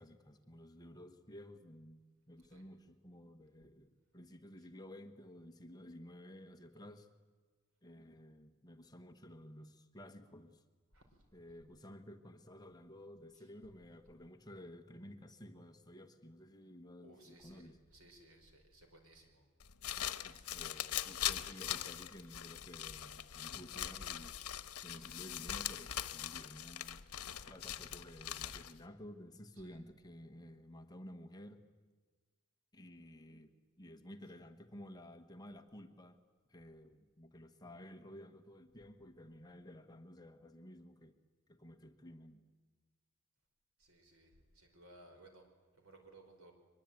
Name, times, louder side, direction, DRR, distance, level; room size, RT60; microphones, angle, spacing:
voice 1, 0.0-7.1 7.8-10.6 11.3-17.8 20.0-24.4 24.8-27.0 27.4-31.7 32.7-36.2 36.5-41.2 41.5-42.4, left 1 dB, 20° left, 6 dB, 1.2 m, -54 dB
voice 2, 10.9-11.3 13.3-13.5 17.0-19.5 20.7-20.8 24.9-25.3 29.6-29.8 43.8-45.5 45.7-46.5, right 1 dB, 70° right, 4 dB, 4.9 m, -61 dB
sound 1, 19.6-28.8, left 11 dB, 85° left, 1.0 m, -41 dB
23.0 x 21.5 x 9.1 m, 1.4 s
head